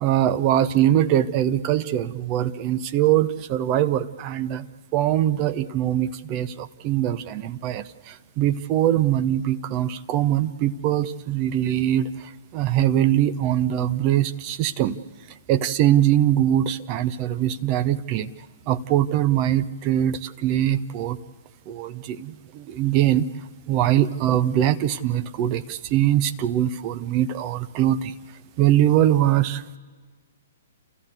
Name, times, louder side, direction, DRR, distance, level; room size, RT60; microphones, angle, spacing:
voice 1, 0.0-4.7 4.9-15.0 15.5-18.3 18.7-21.2 21.7-23.2 23.7-28.1 28.6-29.6, right 12 dB, 30° right, 11 dB, 0.7 m, -22 dB
29.0 x 14.5 x 8.1 m, 1.5 s
figure-of-eight pair, 120°, 0 cm